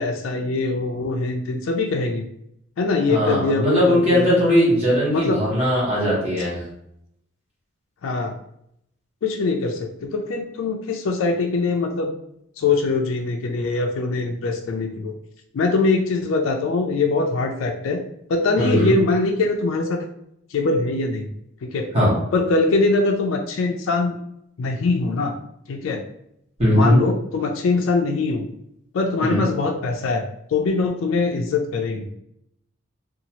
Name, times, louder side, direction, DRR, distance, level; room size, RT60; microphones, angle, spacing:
voice 1, 0.0-2.3 2.8-4.3 5.1-5.4 8.0-8.4 9.2-12.1 12.6-15.1 15.5-18.0 18.3-20.1 20.5-21.3 21.6-21.9 22.3-24.2 24.6-25.4 25.7-26.0 26.7-28.5 28.9-30.2 30.5-32.1, left 3 dB, 75° left, 3 dB, 0.4 m, -22 dB
voice 2, 3.1-6.6 18.6-18.9 21.9-22.1 26.6-27.0 29.2-29.4, equal, 30° right, -6 dB, 1.2 m, -19 dB
2.7 x 2.3 x 2.8 m, 0.75 s
head